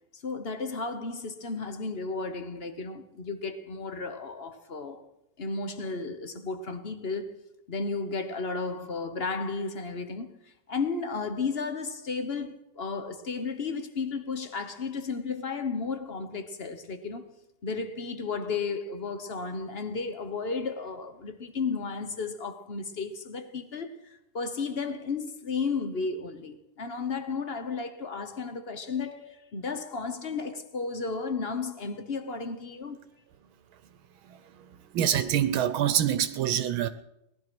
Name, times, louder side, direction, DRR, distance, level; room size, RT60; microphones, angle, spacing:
voice 1, 0.1-5.0 5.4-7.4 7.7-10.4 10.7-17.3 17.6-33.0, left 4 dB, 40° left, 0.9 m, -33 dB
voice 2, 34.9-36.9, right 10 dB, 75° right, 1.6 m, -25 dB
18.5 x 11.5 x 6.1 m
omnidirectional pair, 2.3 m